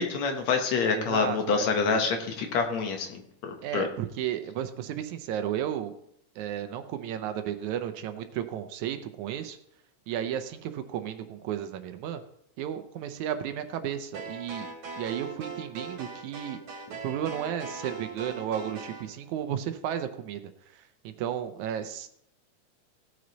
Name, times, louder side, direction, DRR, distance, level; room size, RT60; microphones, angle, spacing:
voice 1, 0.0-3.9, left 5 dB, 65° left, 4 dB, 2.3 m, -27 dB
voice 2, 0.9-1.7 3.6-5.9 6.4-9.6 10.1-12.2 12.6-14.7 15.0-16.6 16.9-22.1, right 10 dB, 75° right, 9 dB, 2.0 m, -33 dB
sound 1, 14.1-19.1, right 4 dB, 55° right, 2.8 m, -40 dB
16.5 x 6.4 x 4.0 m, 0.72 s
omnidirectional pair, 3.5 m